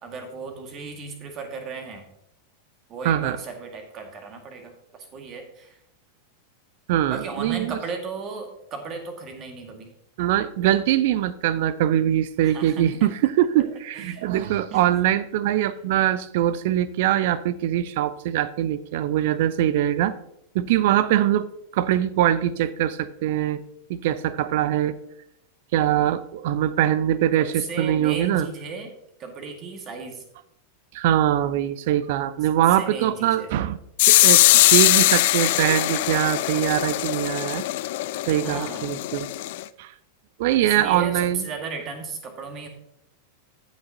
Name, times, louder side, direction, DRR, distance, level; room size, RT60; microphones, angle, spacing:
voice 1, 0.0-2.0 2.9-5.8 7.1-9.9 12.4-13.1 13.9-14.3 14.7-14.8 15.6-15.7 27.5-28.9 29.2-30.2 32.8-33.5 38.4-38.9 40.6-42.7, right 4 dB, 30° right, 4 dB, 1.9 m, -35 dB
voice 2, 3.0-3.4 6.9-7.8 10.2-20.2 20.5-21.5 21.7-23.6 23.9-25.0 25.7-28.5 30.9-33.8 34.0-34.5 34.7-37.6 38.3-39.3 39.8-39.9 40.4-41.4, right 12 dB, 50° right, 17 dB, 0.5 m, -22 dB
sound 1, 34.0-39.6, left 17 dB, 50° left, 0.3 m, -20 dB
16.0 x 6.1 x 2.8 m, 0.76 s
figure-of-eight pair, 90°, 0 cm